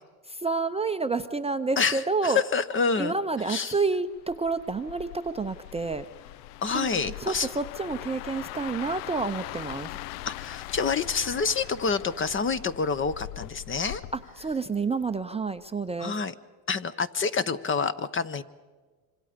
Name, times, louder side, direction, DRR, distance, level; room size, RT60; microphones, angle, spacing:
voice 1, 0.3-2.4 3.0-6.0 6.7-9.9 14.4-16.1, right 4 dB, 15° right, 8 dB, 0.6 m, -29 dB
voice 2, 1.8-3.2 3.4-3.8 6.6-7.5 10.3-14.0 16.0-16.3 16.7-18.4, left 5 dB, 25° left, 14 dB, 0.8 m, -27 dB
sound 1, 4.1-15.2 15.6-15.9, left 16 dB, 90° left, 0.6 m, -41 dB
26.0 x 25.5 x 5.1 m, 1.4 s
supercardioid pair, 100°, 45 cm